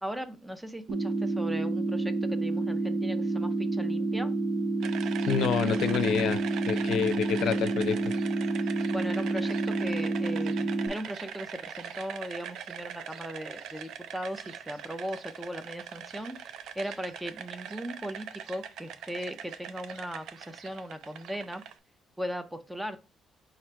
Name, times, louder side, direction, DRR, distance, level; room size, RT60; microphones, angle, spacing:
voice 1, 0.0-4.4 8.9-21.6 22.2-23.0, equal, 5° right, 0.5 m, -38 dB
sound 1, 0.9-10.9, right 3 dB, 55° right, 0.8 m, -29 dB
sound 2, 4.8-21.7, right 8 dB, 80° right, 0.4 m, -42 dB
voice 2, 5.3-6.4 6.7-8.1, left 8 dB, 75° left, 0.4 m, -28 dB
4.3 x 2.5 x 4.4 m
cardioid pair, 90°, 0 cm